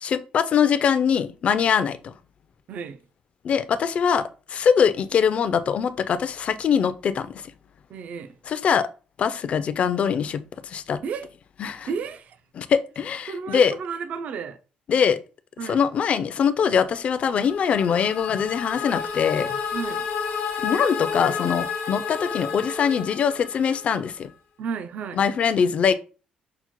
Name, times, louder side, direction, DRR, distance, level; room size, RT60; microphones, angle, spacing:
voice 1, 0.0-2.1 3.4-7.4 8.5-8.9 9.2-11.0 11.6-11.9 12.6-13.7 14.9-15.2 15.7-19.6 20.6-24.3 25.2-25.9, left 7 dB, 45° left, 0.4 m, -22 dB
voice 2, 2.7-3.0 7.9-8.4 11.0-11.3 11.9-12.4 13.3-14.6 15.6-15.8 19.7-20.1 24.6-25.2, right 6 dB, 55° right, 0.3 m, -32 dB
sound 1, 16.9-24.1, left 7 dB, 90° left, 0.8 m, -31 dB
Bowed string instrument, 18.8-23.6, right 1 dB, 85° right, 1.2 m, -38 dB
5.7 x 2.1 x 2.9 m
cardioid pair, 120°, 3 cm